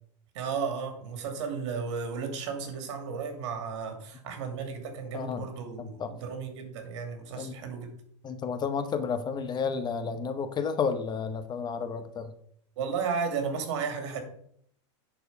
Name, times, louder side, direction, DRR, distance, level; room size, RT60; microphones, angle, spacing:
voice 1, 0.3-7.9 12.8-14.2, right 5 dB, 70° right, 6 dB, 2.5 m, -34 dB
voice 2, 5.1-5.4 5.8-6.1 7.3-7.5 8.2-12.3, left 5 dB, 25° left, 10 dB, 0.9 m, -31 dB
10.5 x 4.7 x 5.3 m, 0.65 s
hypercardioid pair, 120°, 16 cm